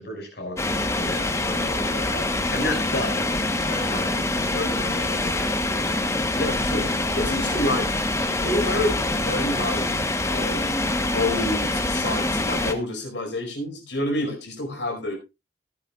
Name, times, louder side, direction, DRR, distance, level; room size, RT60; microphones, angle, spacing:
voice 1, 0.0-6.0, left 1 dB, 65° left, 1 dB, 6.0 m, -34 dB
sound 1, 0.6-12.7, left 2 dB, 15° left, 1.2 m, -25 dB
voice 2, 4.5-5.2 6.3-6.9 7.1-7.9 8.4-9.8 10.3-15.2, left 1 dB, 90° left, 3 dB, 4.9 m, -28 dB
17.5 x 10.0 x 2.4 m, 0.25 s
head